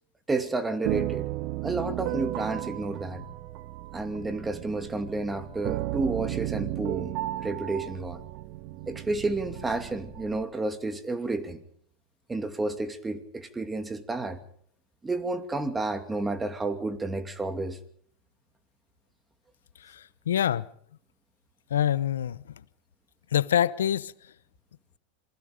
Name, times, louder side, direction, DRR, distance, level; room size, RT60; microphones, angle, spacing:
voice 1, 0.3-1.3 1.6-3.2 3.9-7.1 7.4-8.2 8.9-11.6 12.3-14.4 15.0-17.8, right 2 dB, 15° right, 8 dB, 2.5 m, -31 dB
sound 1, 0.8-10.4, right 15 dB, 55° right, 1.2 m, -34 dB
voice 2, 19.8-20.6 21.7-22.4 23.3-24.1, left 10 dB, 85° left, 17 dB, 0.8 m, -25 dB
27.0 x 20.0 x 5.2 m, 0.63 s
hypercardioid pair, 100°, 0 cm